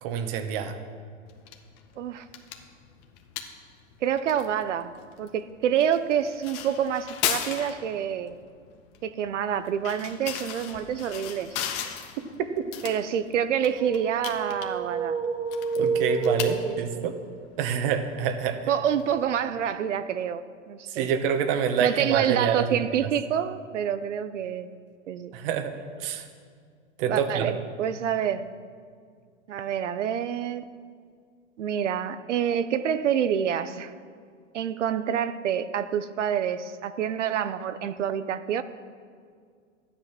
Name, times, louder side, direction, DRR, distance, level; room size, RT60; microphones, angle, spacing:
voice 1, 0.0-0.8 12.6-12.7 15.8-17.1 17.6-18.7 20.9-22.7 25.3-25.7 26.0-26.3 27.0-27.5, right 7 dB, 50° right, 8 dB, 1.5 m, -27 dB
sound 1, 1.3-19.6, left 9 dB, 40° left, 1.6 m, -38 dB
voice 2, 4.0-4.9 5.2-8.3 9.0-11.6 12.8-15.2 16.7-17.0 18.7-21.1 21.8-24.7 25.1-25.3 27.1-28.5 29.5-30.7 31.6-33.9 34.5-38.6, right 9 dB, 75° right, 12 dB, 0.8 m, -27 dB
sound 2, 13.6-17.2, right 4 dB, 10° right, 1.1 m, -29 dB
13.5 x 10.5 x 6.0 m, 2.1 s
hypercardioid pair, 120°, 37 cm